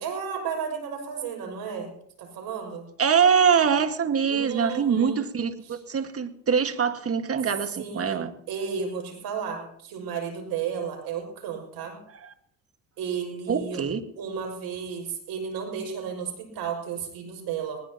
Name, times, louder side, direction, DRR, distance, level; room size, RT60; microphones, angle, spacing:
voice 1, 0.0-1.9 2.2-2.9 4.3-5.2 5.7-5.8 7.8-8.2 8.5-12.0 13.0-13.8 14.2-17.8, right 6 dB, 75° right, 6.3 m, -33 dB
voice 2, 3.0-8.3 12.2-12.3 13.5-14.0, right 6 dB, 40° right, 1.8 m, -24 dB
20.5 x 19.5 x 3.0 m
supercardioid pair, 65°, 37 cm